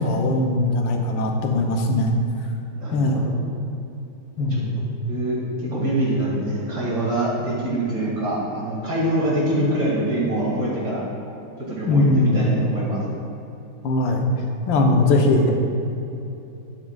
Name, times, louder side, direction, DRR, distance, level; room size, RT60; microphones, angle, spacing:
voice 1, 0.0-2.1 2.9-3.3 4.4-4.7 11.9-12.5 13.8-14.2 14.7-15.5, left 2 dB, 70° left, 2 dB, 1.5 m, -20 dB
voice 2, 2.7-3.4 4.5-4.6 5.1-11.0 11.7-13.0, right 1 dB, 55° right, -6 dB, 2.5 m, -24 dB
12.0 x 8.5 x 2.4 m, 2.8 s
omnidirectional pair, 2.3 m